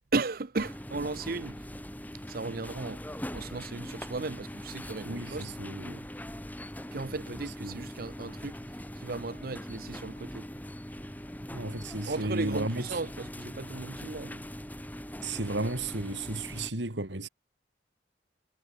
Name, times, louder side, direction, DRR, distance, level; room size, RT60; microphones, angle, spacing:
voice 1, 0.1-1.7 2.2-5.5 6.9-10.5 12.0-14.5, right 3 dB, 55° right, 0.8 m, -36 dB
sound 1, 0.5-16.7, equal, 10° left, 6.1 m, -41 dB
voice 2, 5.0-6.1 7.6-7.8 11.5-12.9 15.2-17.3, right 2 dB, 85° right, 2.9 m, -34 dB
head